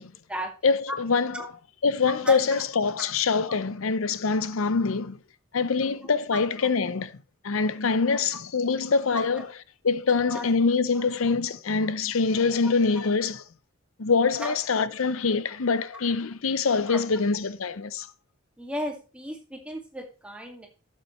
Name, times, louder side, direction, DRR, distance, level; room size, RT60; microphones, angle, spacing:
voice 1, 0.6-1.5 1.8-5.2 5.5-7.1 7.4-9.5 9.8-13.4 14.0-18.1, left 4 dB, 70° left, 0.7 m, -24 dB
voice 2, 18.6-20.7, equal, 5° right, 2.1 m, -34 dB
12.0 x 7.5 x 3.1 m
head